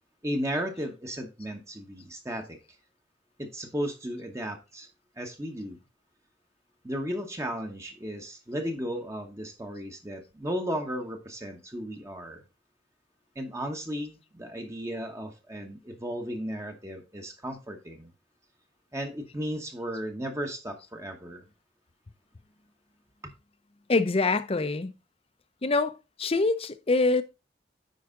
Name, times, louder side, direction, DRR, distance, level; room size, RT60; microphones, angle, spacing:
voice 1, 0.2-2.6 3.4-4.9 5.2-5.8 6.8-12.4 13.3-18.1 18.9-21.4 23.2-23.3, equal, 15° right, 1.0 m, -35 dB
voice 2, 23.9-24.9 25.6-27.2, left 3 dB, 35° left, 0.6 m, -25 dB
9.4 x 4.8 x 3.7 m
head